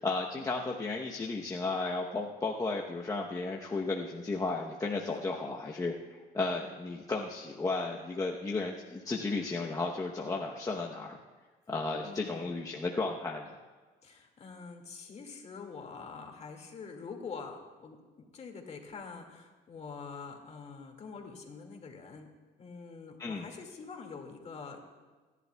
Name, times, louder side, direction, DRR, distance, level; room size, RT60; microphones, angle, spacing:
voice 1, 0.0-5.9 6.3-11.2 11.7-13.6 23.2-23.4, left 3 dB, 20° left, -1 dB, 0.9 m, -34 dB
voice 2, 5.0-5.4 12.0-12.5 14.0-18.0 18.3-22.3 22.6-24.8, left 5 dB, 40° left, 3 dB, 2.1 m, -45 dB
28.0 x 11.0 x 2.3 m, 1.4 s
cardioid pair, 110°, 17 cm